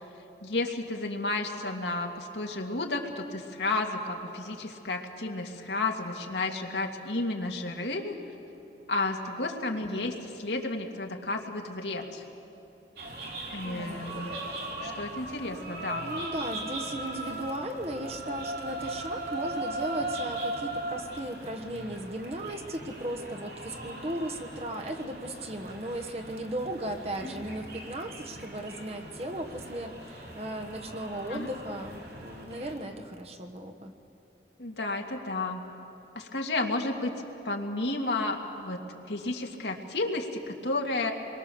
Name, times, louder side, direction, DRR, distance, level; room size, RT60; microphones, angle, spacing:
voice 1, 0.4-8.2 8.9-12.2 13.5-14.4 14.8-16.1 31.3-31.5 34.6-35.6 36.2-37.1 37.4-38.8 39.1-41.1, left 2 dB, 85° left, 2 dB, 2.1 m, -32 dB
voice 2, 9.8-10.2 13.6-14.3 16.0-33.9, right 1 dB, 35° right, 4 dB, 1.3 m, -36 dB
sound 1, 13.0-32.7, right 1 dB, 70° right, 5.1 m, -39 dB
27.0 x 22.5 x 7.0 m, 2.9 s
head